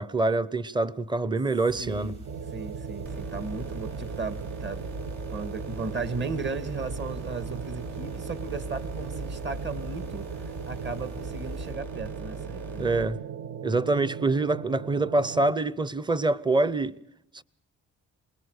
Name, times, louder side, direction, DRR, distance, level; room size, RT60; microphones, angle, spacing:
voice 1, 0.0-2.2 12.8-13.2 13.6-17.0 17.3-17.4, right 2 dB, 15° right, 0.9 m, -25 dB
sound 1, 1.7-11.7, equal, 85° right, 5.4 m, -43 dB
voice 2, 1.8-2.2 2.5-4.8 5.3-12.9, right 4 dB, 35° right, 2.1 m, -36 dB
sound 2, 2.2-15.5, right 8 dB, 55° right, 0.8 m, -39 dB
sound 3, 3.0-13.0, right 1 dB, 70° right, 5.7 m, -41 dB
27.5 x 20.5 x 6.6 m
cardioid pair, 90°, 30 cm